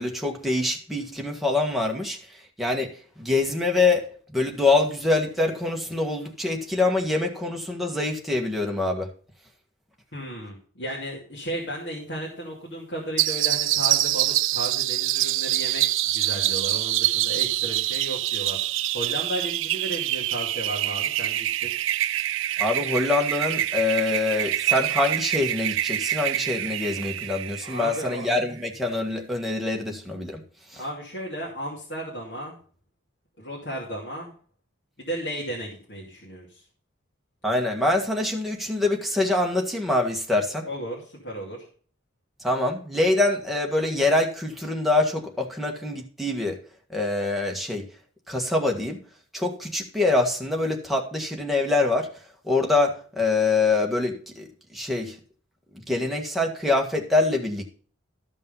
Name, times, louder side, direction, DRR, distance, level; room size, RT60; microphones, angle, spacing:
voice 1, 0.0-2.2 2.6-2.9 3.2-4.1 4.3-9.1 22.6-30.4 30.7-30.8 37.4-40.7 42.4-46.6 46.9-47.8 48.3-49.0 49.3-52.1 52.4-55.2 55.9-57.7, left 2 dB, ahead, 1.6 m, -25 dB
voice 2, 10.1-18.6 18.9-21.7 27.6-28.3 30.8-32.6 33.4-34.3 35.0-36.6 40.6-41.7, right 1 dB, 60° left, 2.7 m, -34 dB
sound 1, 13.2-28.4, right 14 dB, 75° right, 0.4 m, -26 dB
13.5 x 5.5 x 5.5 m
head